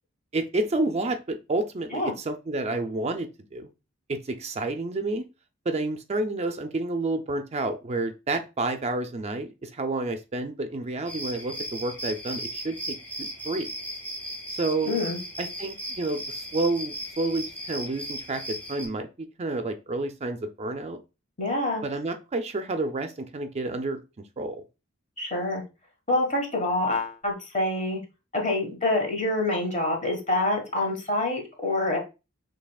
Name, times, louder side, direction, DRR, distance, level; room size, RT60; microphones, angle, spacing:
voice 1, 0.3-3.7 4.1-5.3 5.7-13.7 14.5-15.0 15.4-21.0 21.8-24.0 24.4-24.6, right 2 dB, 35° right, 7 dB, 0.4 m, -30 dB
sound 1, 11.0-18.9, right 1 dB, 10° left, 1.6 m, -36 dB
voice 2, 14.8-15.2 21.4-21.8 25.2-25.6 26.1-28.0 28.3-32.0, left 2 dB, 35° left, 2 dB, 1.4 m, -26 dB
6.4 x 3.2 x 2.3 m, 0.28 s
head